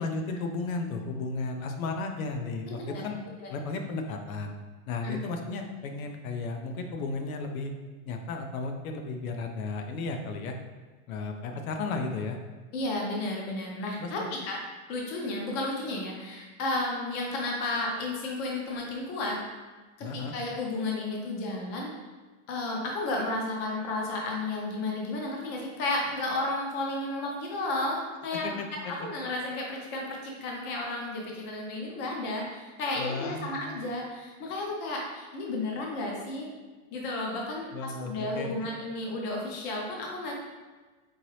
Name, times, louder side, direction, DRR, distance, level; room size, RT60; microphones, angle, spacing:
voice 1, 0.0-3.2 3.5-4.5 4.9-7.7 8.1-10.5 11.1-12.4 14.0-14.1 20.0-20.3 28.3-28.9 33.0-33.6 37.7-38.5, left 3 dB, 80° left, 4 dB, 0.7 m, -34 dB
voice 2, 2.6-3.0 3.4-3.5 5.0-5.2 12.7-14.6 14.9-19.4 20.0-21.9 22.5-36.5 36.9-40.3, left 2 dB, 25° left, -1 dB, 0.6 m, -33 dB
4.6 x 2.8 x 3.1 m, 1.3 s
supercardioid pair, 160°, 41 cm